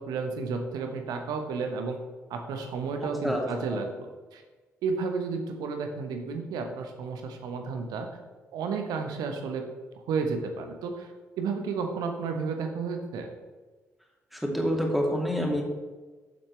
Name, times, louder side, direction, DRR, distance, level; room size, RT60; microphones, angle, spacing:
voice 1, 0.0-2.0 2.3-4.4 4.8-8.1 8.5-9.6 10.1-11.1 11.4-13.3, right 5 dB, 65° right, 5 dB, 1.1 m, -32 dB
voice 2, 14.3-15.6, equal, ahead, 0 dB, 2.5 m, -27 dB
9.9 x 7.4 x 3.3 m, 1.3 s
figure-of-eight pair, 40°, 7 cm